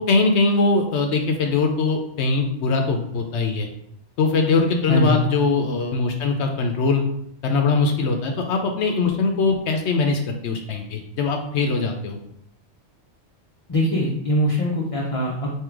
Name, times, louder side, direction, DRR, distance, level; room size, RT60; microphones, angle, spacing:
voice 1, 0.0-3.7 4.2-7.0 7.4-12.2, left 3 dB, 75° left, 4 dB, 0.8 m, -21 dB
voice 2, 4.9-5.3 13.7-15.5, equal, 35° left, -4 dB, 0.6 m, -22 dB
3.7 x 2.8 x 4.5 m, 0.72 s
omnidirectional pair, 1.2 m